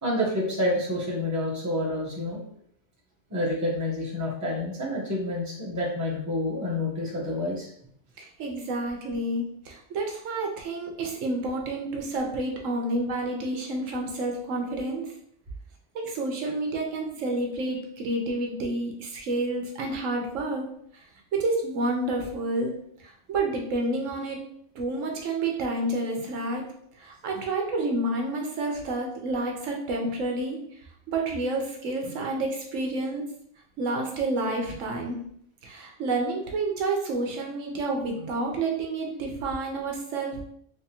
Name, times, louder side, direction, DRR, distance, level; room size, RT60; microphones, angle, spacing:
voice 1, 0.0-2.4 3.3-7.7, left 1 dB, 15° right, -5 dB, 1.0 m, -28 dB
voice 2, 8.2-15.1 15.9-20.7 20.9-21.0 21.3-24.4 24.7-26.7 27.0-30.6 31.1-33.3 33.8-35.2 35.6-40.4, right 2 dB, 80° right, 1 dB, 1.1 m, -29 dB
3.4 x 3.4 x 2.9 m, 0.66 s
omnidirectional pair, 1.3 m